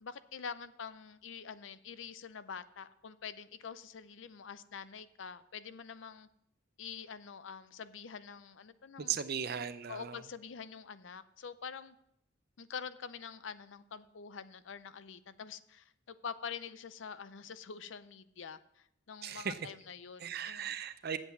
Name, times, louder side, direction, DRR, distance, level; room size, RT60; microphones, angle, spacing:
voice 1, 0.0-6.3 6.8-9.2 9.9-12.0 12.6-20.7, left 6 dB, 75° left, 14 dB, 0.5 m, -46 dB
voice 2, 9.0-10.2 19.2-19.6 20.2-21.2, right 8 dB, 55° right, 12 dB, 0.6 m, -37 dB
8.0 x 7.7 x 7.1 m, 0.78 s
head